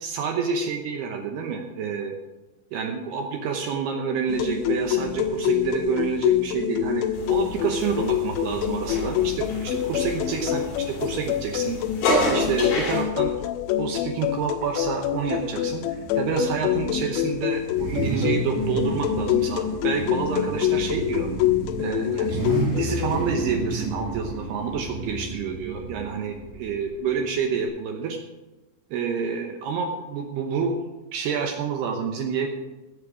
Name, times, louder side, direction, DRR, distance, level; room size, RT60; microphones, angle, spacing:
voice 1, 0.0-2.1 2.7-11.8 12.3-13.3 13.8-21.3 21.8-22.4 22.7-28.2 28.9-32.5, right 6 dB, 85° right, 3 dB, 2.3 m, -28 dB
sound 1, 4.3-23.2, left 11 dB, 85° left, 2.7 m, -26 dB
sound 2, 7.1-13.0, left 1 dB, 55° left, 4.0 m, -29 dB
Car / Idling / Accelerating revving vroom, 15.6-27.7, right 2 dB, 15° right, 5.4 m, -32 dB
15.5 x 8.5 x 4.9 m, 1.1 s
omnidirectional pair, 6.0 m